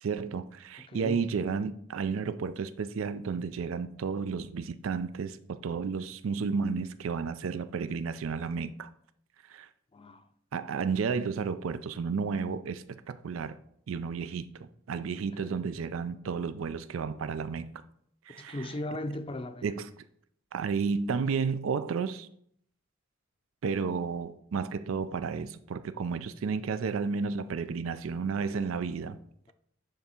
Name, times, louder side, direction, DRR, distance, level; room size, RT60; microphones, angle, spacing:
voice 1, 0.0-8.9 9.5-9.7 10.5-13.6 13.9-17.7 18.3-18.7 19.6-19.9 20.5-22.3 23.6-29.2, right 5 dB, 85° right, 0.4 m, -32 dB
voice 2, 0.8-1.2 9.9-10.3 15.3-15.5 18.4-19.6, left 1 dB, 25° left, 0.5 m, -37 dB
10.0 x 3.5 x 4.3 m
head